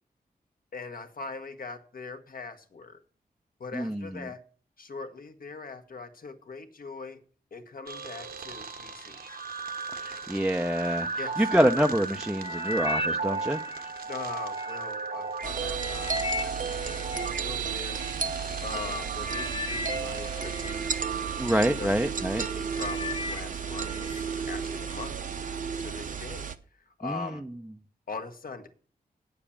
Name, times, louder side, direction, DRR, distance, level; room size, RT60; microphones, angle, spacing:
voice 1, 0.7-3.0 3.6-4.4 4.8-7.2 7.5-9.4 11.2-11.5 14.1-16.1 17.2-18.0 18.6-20.8 21.6-22.0 22.3-25.1 25.8-26.5 26.9-27.4 28.1-28.7, left 4 dB, 65° left, 1.4 m, -41 dB
voice 2, 3.7-4.3 10.0-11.1 11.4-13.6 21.4-22.4 27.0-27.3, equal, 5° right, 0.5 m, -26 dB
sound 1, 7.9-26.2, right 5 dB, 75° right, 1.1 m, -36 dB
sound 2, 12.4-14.8 15.3-18.1 18.8-19.0 19.2-21.6 22.1-22.4 22.7-24.2 24.6-25.1 25.7-25.8, left 4 dB, 35° left, 0.8 m, -38 dB
sound 3, 15.4-26.6, right 6 dB, 55° right, 0.8 m, -34 dB
8.8 x 7.1 x 8.5 m
wide cardioid pair, 120°, 16 cm